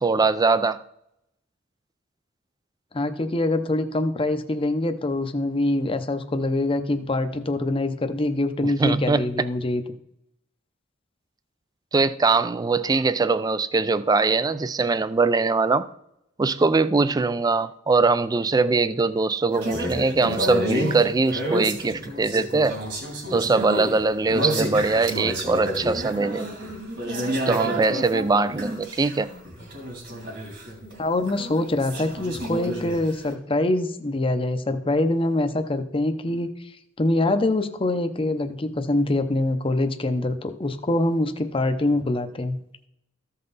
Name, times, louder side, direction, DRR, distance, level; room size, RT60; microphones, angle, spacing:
voice 1, 0.0-0.8 8.6-9.3 11.9-15.9 16.4-22.8 23.3-26.6 27.5-29.3, right 3 dB, 20° right, 0.3 m, -22 dB
voice 2, 2.9-9.8 31.0-36.5 37.0-42.6, left 2 dB, 30° left, 0.7 m, -24 dB
sound 1, 19.5-31.0 31.3-33.3, right 1 dB, 60° right, 2.7 m, -30 dB
14.0 x 5.6 x 4.0 m
head